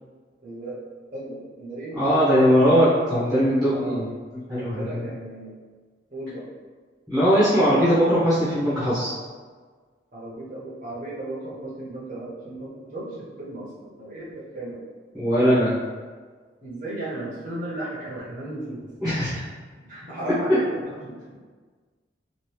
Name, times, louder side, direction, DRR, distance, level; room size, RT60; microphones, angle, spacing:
voice 1, 0.4-0.8 1.1-2.2 3.7-4.0 4.5-5.5 6.1-6.4 10.1-14.9 16.6-18.9 19.9-21.3, right 1 dB, 45° right, -7 dB, 0.7 m, -35 dB
voice 2, 1.9-5.1 7.1-9.1 15.1-15.7 19.0-19.4, equal, ahead, -12 dB, 0.7 m, -20 dB
2.9 x 2.5 x 3.1 m, 1.5 s
head